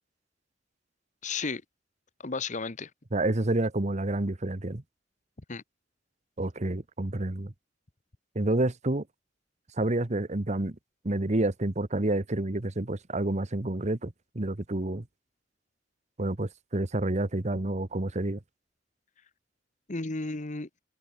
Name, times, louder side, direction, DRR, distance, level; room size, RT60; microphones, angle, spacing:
voice 1, 1.2-1.6 2.2-2.9 5.5-5.6 19.9-20.7, left 3 dB, 40° left, 1.2 m, -33 dB
voice 2, 3.1-4.8 6.4-7.5 8.3-9.0 9.8-10.8 11.0-15.0 16.2-18.4, right 2 dB, 40° right, 1.2 m, -29 dB
head